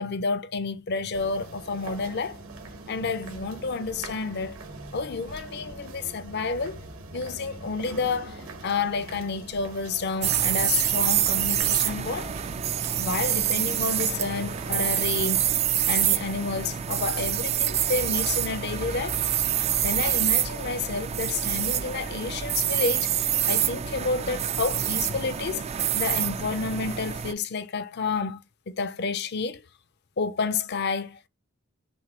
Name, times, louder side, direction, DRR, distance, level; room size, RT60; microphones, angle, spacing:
voice 1, 0.0-2.4 2.9-4.6 4.9-6.8 7.1-12.3 13.0-15.5 15.9-19.2 19.8-23.1 23.5-25.7 25.9-29.6 30.2-31.3, left 4 dB, 50° left, 0.5 m, -30 dB
sound 1, 1.1-14.8, right 2 dB, 75° right, 1.3 m, -42 dB
sound 2, 10.2-27.3, right 10 dB, 30° right, 0.3 m, -26 dB
6.3 x 2.7 x 2.9 m
head